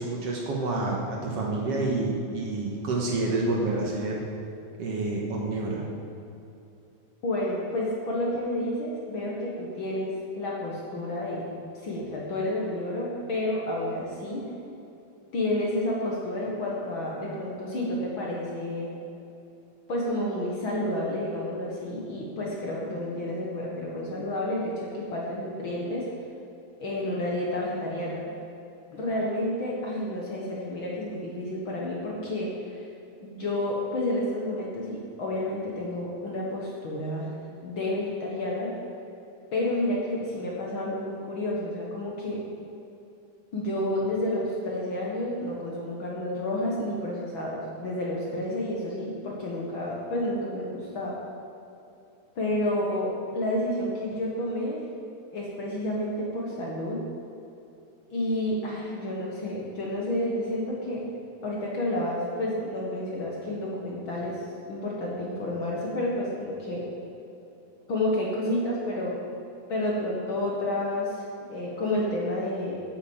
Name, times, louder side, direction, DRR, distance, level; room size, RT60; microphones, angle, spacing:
voice 1, 0.0-4.2 4.8-5.8, right 2 dB, 55° right, -2 dB, 2.2 m, -28 dB
voice 2, 7.2-11.5 11.8-14.5 15.3-18.9 19.9-26.1 26.8-28.3 28.9-32.5 33.2-37.3 37.6-38.7 39.5-42.4 43.5-51.2 52.4-54.9 55.3-57.0 58.1-61.0 61.4-66.8 67.9-69.2 69.7-72.8, left 1 dB, 50° left, -3 dB, 1.9 m, -30 dB
8.9 x 8.6 x 7.3 m, 2.8 s
omnidirectional pair, 3.5 m